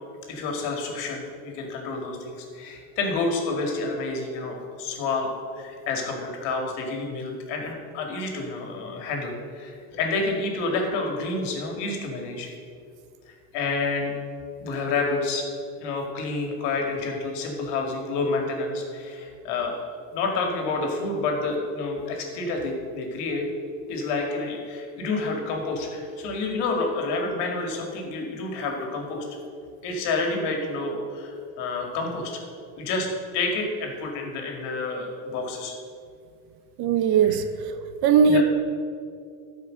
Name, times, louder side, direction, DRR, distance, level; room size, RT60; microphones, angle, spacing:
voice 1, 0.3-5.3 5.6-12.5 13.5-14.1 14.6-15.4 15.8-23.5 23.9-29.3 29.8-32.4 32.8-33.1 33.3-35.7 38.2-38.4, left 3 dB, 75° left, 2 dB, 2.2 m, -29 dB
voice 2, 36.8-37.4 38.0-38.4, right 6 dB, 65° right, 9 dB, 1.0 m, -18 dB
12.5 x 5.2 x 6.4 m, 2.4 s
cardioid pair, 120°, 41 cm